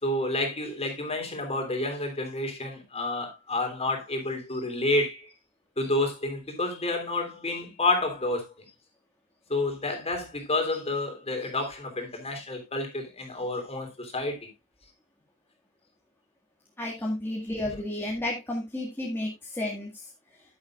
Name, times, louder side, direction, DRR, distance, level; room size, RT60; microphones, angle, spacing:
voice 1, 0.0-5.3 5.8-8.5 9.5-14.5, left 2 dB, 30° left, 3.2 m, -29 dB
voice 2, 16.8-20.4, left 1 dB, 10° left, 1.9 m, -32 dB
11.0 x 10.5 x 2.4 m
head